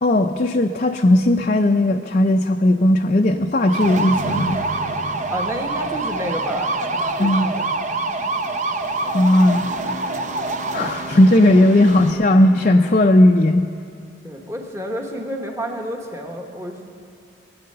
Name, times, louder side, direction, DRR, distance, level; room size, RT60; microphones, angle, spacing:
voice 1, 0.0-4.6 7.2-7.5 9.1-9.7 10.7-13.7, left 1 dB, 35° left, 3 dB, 0.5 m, -16 dB
sound 1, 3.6-12.1, right 2 dB, 35° right, 0.6 m, -25 dB
voice 2, 5.3-7.7 14.2-16.8, right 1 dB, 15° right, 1 dB, 1.3 m, -30 dB
Brass instrument, 9.0-13.3, left 1 dB, 5° left, 0.9 m, -39 dB
20.5 x 9.6 x 6.7 m, 2.5 s
head